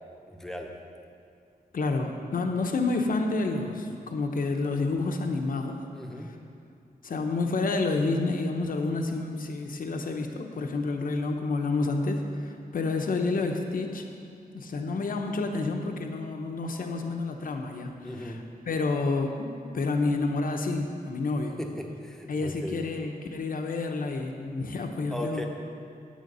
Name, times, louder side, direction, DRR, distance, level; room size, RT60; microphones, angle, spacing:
voice 1, 0.3-0.7 5.9-6.3 18.0-18.4 21.6-22.8 25.1-25.5, equal, 5° left, 1 dB, 1.1 m, -37 dB
voice 2, 1.7-5.8 6.2-6.3 7.0-14.1 14.5-17.9 18.2-18.4 18.7-19.5 19.7-21.5 22.3-25.5, left 3 dB, 65° left, 3 dB, 0.9 m, -29 dB
9.3 x 8.6 x 5.5 m, 2.4 s
wide cardioid pair, 100°, 16 cm